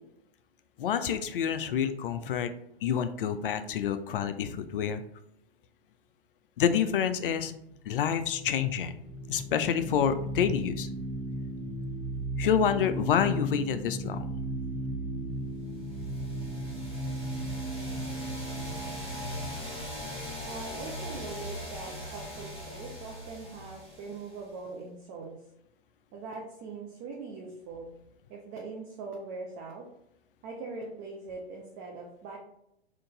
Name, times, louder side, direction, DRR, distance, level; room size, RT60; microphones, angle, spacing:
voice 1, 0.8-2.5 2.8-5.0 6.6-7.5 7.9-8.9 9.3-10.9 12.4-14.2, left 8 dB, 55° left, 10 dB, 0.4 m, -28 dB
sound 1, 7.8-21.1, right 1 dB, 75° right, 1.4 m, -36 dB
sound 2, 15.9-24.6, left 1 dB, 15° left, 1.4 m, -40 dB
voice 2, 20.4-25.4 26.1-27.9 28.3-29.8 30.4-32.4, right 3 dB, 20° right, 0 dB, 0.4 m, -41 dB
3.8 x 2.5 x 3.7 m, 0.78 s
figure-of-eight pair, 110°, 33 cm